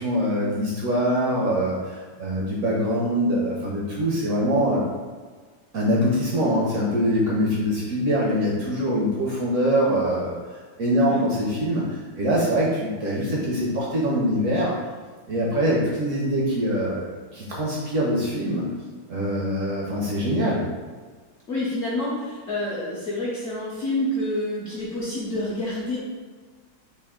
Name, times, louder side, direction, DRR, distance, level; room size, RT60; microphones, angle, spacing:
voice 1, 0.0-4.8 5.7-10.3 10.8-14.7 15.3-18.7 19.1-20.6, equal, 65° right, -4 dB, 0.8 m, -23 dB
voice 2, 21.5-26.0, left 1 dB, 65° left, -6 dB, 0.7 m, -28 dB
3.4 x 2.5 x 3.5 m, 1.5 s
omnidirectional pair, 1.8 m